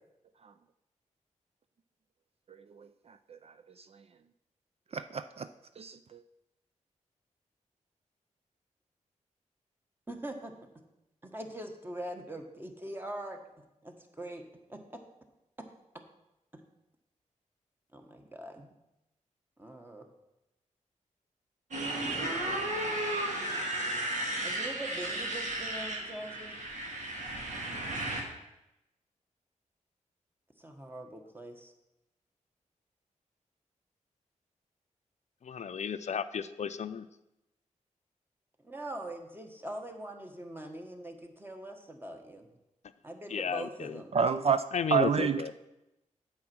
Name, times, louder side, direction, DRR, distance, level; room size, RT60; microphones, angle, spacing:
voice 1, 4.9-5.5 5.8-6.2 44.1-44.6 44.9-45.4, right 6 dB, 50° right, 11 dB, 0.5 m, -28 dB
voice 2, 10.1-10.5 11.2-14.4 14.7-15.0 17.9-18.7 19.6-20.1 22.0-22.3 24.4-26.6 30.6-31.7 38.6-42.5 43.0-44.1, right 1 dB, 15° right, 4 dB, 1.5 m, -42 dB
Motorcycle, 21.7-28.2, right 1 dB, 65° right, 2.3 m, -34 dB
voice 3, 35.4-37.1 43.3-44.0 44.7-45.5, left 6 dB, 60° left, 12 dB, 0.5 m, -33 dB
8.6 x 7.2 x 6.1 m, 0.91 s
cardioid pair, 85°, 13 cm